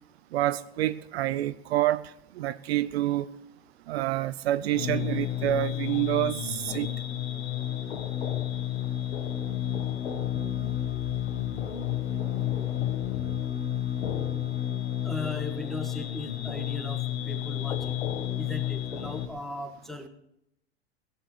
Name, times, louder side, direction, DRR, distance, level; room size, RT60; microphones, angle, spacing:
voice 1, 0.3-2.0 2.4-3.3 3.9-6.9 10.6-10.7, right 14 dB, 75° right, 0.7 m, -27 dB
sound 1, 4.7-19.3, left 11 dB, 85° left, 1.5 m, -31 dB
voice 2, 15.0-18.0 18.4-20.1, left 1 dB, ahead, 1.7 m, -38 dB
17.0 x 6.7 x 8.3 m
hypercardioid pair, 110°, 31 cm